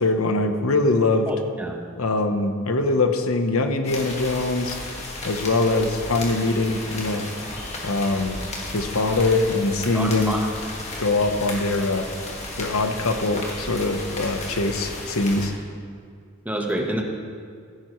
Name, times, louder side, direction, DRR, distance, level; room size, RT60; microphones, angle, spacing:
voice 1, 0.0-1.3 2.0-4.8 5.2-7.3 7.8-8.4 8.7-10.4 11.0-12.1 12.6-15.5, left 2 dB, 75° left, 7 dB, 0.9 m, -22 dB
voice 2, 1.3-1.8 9.9-10.5 16.4-17.0, right 1 dB, 5° right, 1 dB, 1.1 m, -27 dB
sound 1, 3.8-15.5, left 2 dB, 30° left, 1.8 m, -34 dB
15.5 x 10.0 x 3.1 m, 2.2 s
head